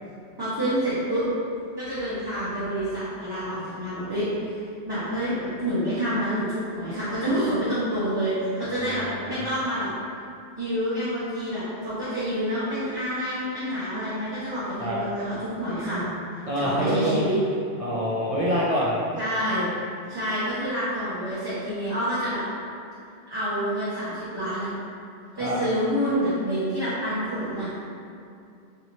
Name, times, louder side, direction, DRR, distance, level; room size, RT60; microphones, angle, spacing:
voice 1, 0.4-1.3 1.8-4.6 4.9-5.3 5.6-9.9 10.6-16.0 16.5-17.4 19.2-19.6 20.1-22.4 23.3-24.7 25.4-27.7, equal, 25° right, -13 dB, 0.8 m, -28 dB
voice 2, 8.7-9.4 14.8-15.0 16.5-17.2 17.8-19.0 25.4-25.6, equal, 55° right, -7 dB, 0.4 m, -26 dB
3.1 x 2.8 x 3.9 m, 2.5 s
omnidirectional pair, 1.1 m